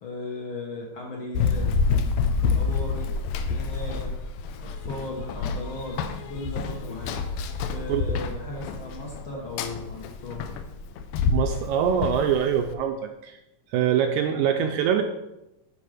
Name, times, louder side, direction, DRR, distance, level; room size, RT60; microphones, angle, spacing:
voice 1, 0.0-1.7 2.5-3.1 3.5-4.2 4.6-6.0 6.3-7.2 7.7-10.4, left 2 dB, 60° left, -1 dB, 1.4 m, -36 dB
Run, 1.3-12.7, left 5 dB, 90° left, 2.4 m, -28 dB
voice 2, 11.3-13.4 13.7-15.0, right 8 dB, 80° right, 5 dB, 1.8 m, -24 dB
9.4 x 5.4 x 5.0 m, 0.90 s
omnidirectional pair, 3.9 m